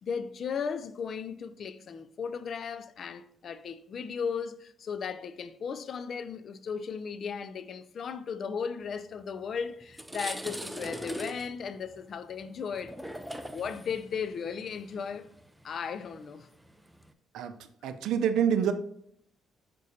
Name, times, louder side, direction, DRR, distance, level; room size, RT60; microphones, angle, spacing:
voice 1, 0.0-12.9 13.4-15.3 15.6-16.5, left 6 dB, 55° left, 0.4 m, -36 dB
sound 1, 9.3-9.4 9.8-17.1, right 1 dB, 5° right, 0.5 m, -42 dB
voice 2, 17.8-18.7, right 8 dB, 80° right, 0.5 m, -26 dB
6.5 x 5.2 x 2.7 m
cardioid pair, 90°, 0 cm